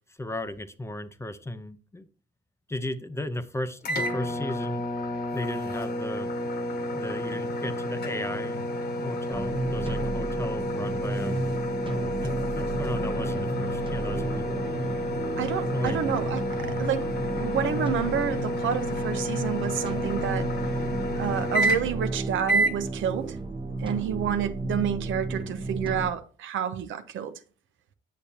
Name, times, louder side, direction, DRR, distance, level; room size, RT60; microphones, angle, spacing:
voice 1, 0.1-2.1 2.7-4.8 5.3-6.3 6.9-11.4 12.2-14.5 15.7-16.0, left 1 dB, 15° left, 0.7 m, -35 dB
sound 1, 3.8-22.1 22.5-22.8, equal, 55° left, 1.4 m, -30 dB
sound 2, 9.3-26.1, right 2 dB, 25° right, 0.9 m, -33 dB
voice 2, 15.4-17.1 17.3-20.5 21.2-23.4 23.8-27.3, right 9 dB, 75° right, 0.8 m, -29 dB
8.5 x 6.9 x 2.8 m
cardioid pair, 90°, 20 cm